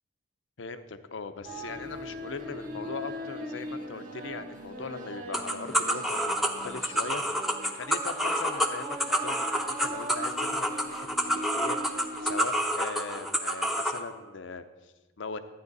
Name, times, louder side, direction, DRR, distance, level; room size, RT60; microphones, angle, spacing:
voice 1, 0.6-7.2 7.7-15.4, left 4 dB, 75° left, 10 dB, 0.7 m, -40 dB
sound 1, 1.4-12.4, right 1 dB, 45° right, 1.3 m, -40 dB
sound 2, 5.3-14.0, equal, ahead, 0.7 m, -28 dB
12.5 x 9.5 x 4.0 m, 1.2 s
head